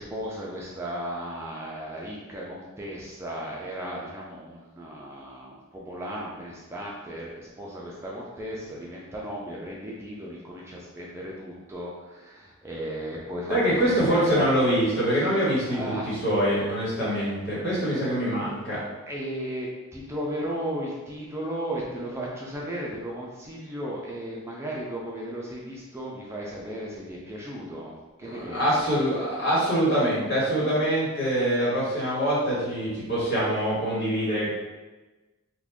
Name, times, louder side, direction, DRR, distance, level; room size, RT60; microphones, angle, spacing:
voice 1, 0.0-14.8 15.2-15.3 15.7-16.1 19.1-27.9 28.2-28.9, right 1 dB, 15° right, -4 dB, 0.4 m, -35 dB
voice 2, 13.5-18.8 28.2-34.5, equal, 55° left, -8 dB, 1.5 m, -24 dB
2.9 x 2.5 x 3.5 m, 1.2 s
head